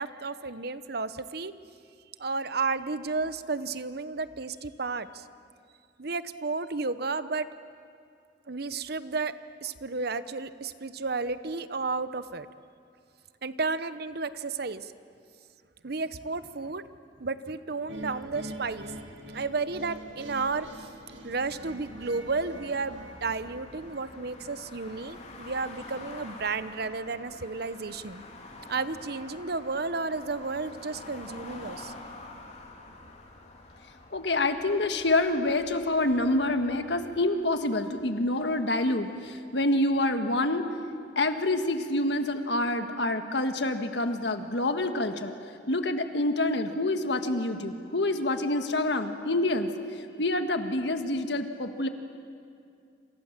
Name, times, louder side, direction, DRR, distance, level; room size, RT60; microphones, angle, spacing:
voice 1, 0.0-1.5 2.2-5.2 6.0-7.6 8.5-12.5 13.4-14.9 15.8-16.8 17.2-18.9 19.3-20.9 21.2-28.2 28.7-31.9, right 4 dB, 60° right, 13 dB, 0.9 m, -32 dB
sound 1, 17.9-37.2, left 2 dB, 40° left, 3.0 m, -48 dB
sound 2, 17.9-25.0, right 1 dB, 90° right, 2.5 m, -45 dB
voice 2, 34.1-40.7 41.1-45.3 45.7-49.7 50.2-51.9, left 2 dB, 70° left, 7 dB, 1.7 m, -27 dB
27.5 x 27.0 x 7.4 m, 2.4 s
head